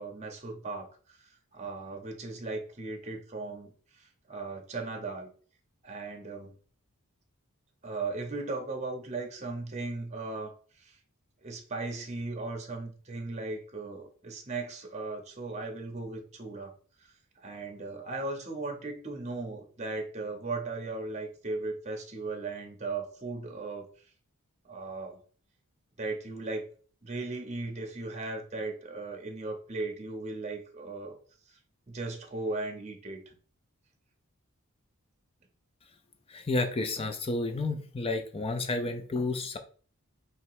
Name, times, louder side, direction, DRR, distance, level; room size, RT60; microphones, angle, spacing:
voice 1, 0.0-5.3 5.8-6.5 7.8-11.0 11.4-16.7 17.0-23.9 24.6-25.2 26.0-26.6 27.0-31.2 31.9-33.3, right 3 dB, 30° right, 2 dB, 0.8 m, -37 dB
voice 2, 36.3-39.6, left 2 dB, 25° left, 7 dB, 0.5 m, -31 dB
3.2 x 2.9 x 4.7 m, 0.42 s
head